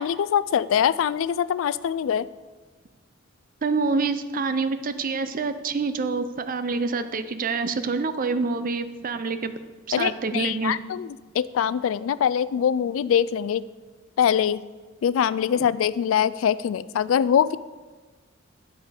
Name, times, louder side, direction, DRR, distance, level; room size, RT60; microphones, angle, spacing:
voice 1, 0.0-2.3 9.9-11.1 11.4-13.6 14.2-14.6 15.0-17.6, left 8 dB, 85° left, 17 dB, 0.3 m, -23 dB
voice 2, 3.6-9.5 9.9-10.8 15.5-15.7, right 4 dB, 45° right, 11 dB, 0.5 m, -27 dB
10.5 x 5.0 x 5.1 m, 1.3 s
head